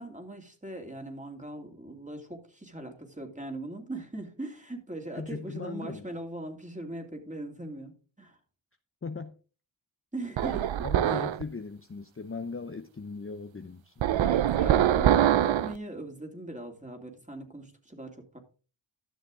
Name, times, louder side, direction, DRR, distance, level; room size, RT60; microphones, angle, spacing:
voice 1, 0.0-8.4 10.1-11.3 14.2-18.4, right 1 dB, 15° right, 2.7 m, -40 dB
voice 2, 5.2-6.0 9.0-9.3 10.8-13.9, left 4 dB, 30° left, 0.7 m, -38 dB
sound 1, 10.4-11.4 14.0-15.8, right 11 dB, 75° right, 0.6 m, -24 dB
12.5 x 6.5 x 3.8 m
cardioid pair, 45°, 47 cm